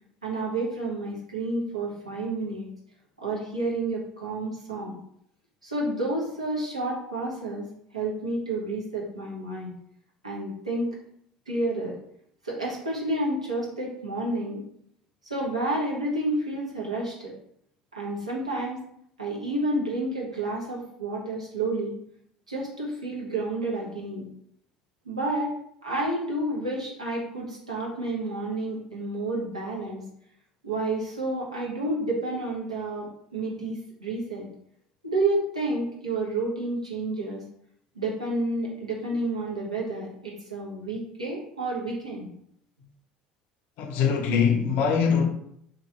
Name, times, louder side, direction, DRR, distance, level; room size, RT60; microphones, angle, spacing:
voice 1, 0.2-2.7 3.2-5.0 5.6-7.7 7.9-9.7 10.2-10.9 11.5-11.9 12.4-14.6 15.2-17.3 17.9-18.8 19.2-21.9 22.5-24.3 25.0-25.5 25.8-30.0 30.6-34.5 35.0-37.4 37.9-42.3, right 2 dB, 85° right, 1.0 m, -30 dB
voice 2, 43.8-45.3, left 6 dB, 55° left, 0.6 m, -22 dB
3.1 x 2.6 x 4.0 m
figure-of-eight pair, 60°, 3 cm